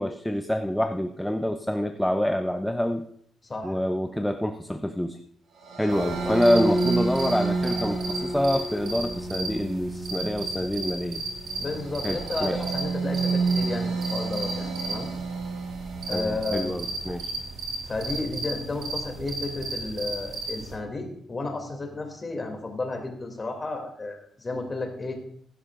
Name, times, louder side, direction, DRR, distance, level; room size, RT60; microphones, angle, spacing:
voice 1, 0.0-3.1 3.6-5.2 5.8-11.2 12.0-12.6 16.1-17.3, equal, 5° left, 7 dB, 0.5 m, -26 dB
voice 2, 3.4-3.8 5.9-6.4 11.6-15.1 16.1-16.7 17.9-25.2, left 2 dB, 25° left, 3 dB, 2.6 m, -32 dB
sound 1, 5.6-16.9, right 3 dB, 90° right, 5.6 m, -30 dB
sound 2, 5.9-20.8, right 2 dB, 65° right, 2.8 m, -35 dB
16.5 x 11.0 x 2.5 m, 0.65 s
cardioid pair, 130°, 0 cm